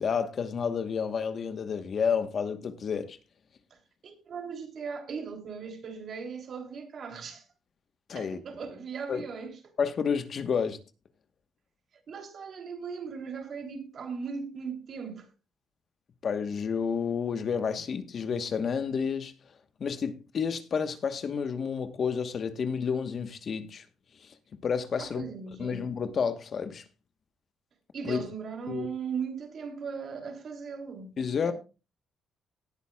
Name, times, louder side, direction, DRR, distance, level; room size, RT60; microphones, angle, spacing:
voice 1, 0.0-3.2 8.1-8.4 9.1-9.2 9.8-10.8 16.2-19.3 19.8-23.8 24.2-25.3 25.6-26.8 28.0-28.2 28.7-28.9 31.2-31.5, left 6 dB, 50° left, 1.2 m, -30 dB
voice 2, 4.0-7.4 8.1-9.7 12.1-15.3 25.0-25.9 27.9-31.1 31.4-31.5, right 6 dB, 55° right, 3.1 m, -38 dB
18.0 x 9.4 x 2.3 m
cardioid pair, 90°, 0 cm